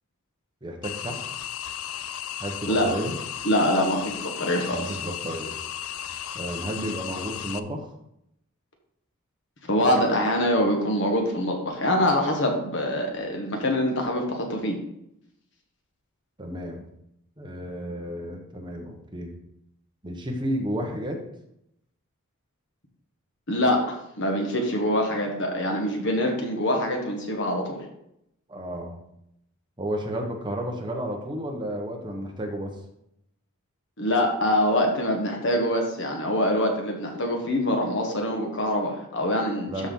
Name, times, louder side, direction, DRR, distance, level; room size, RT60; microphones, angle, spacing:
voice 1, 0.6-1.2 2.4-3.2 4.7-5.6 6.3-7.9 16.4-16.9 17.4-19.3 20.0-21.2 28.5-29.0 29.8-32.7 39.7-39.9, equal, 20° right, 1 dB, 1.2 m, -32 dB
sound 1, 0.8-7.6, left 10 dB, 75° left, 0.5 m, -35 dB
voice 2, 3.4-5.0 9.6-14.8 23.5-27.8 34.0-39.9, left 1 dB, 55° left, 2 dB, 1.4 m, -24 dB
13.0 x 4.4 x 3.9 m, 0.78 s
head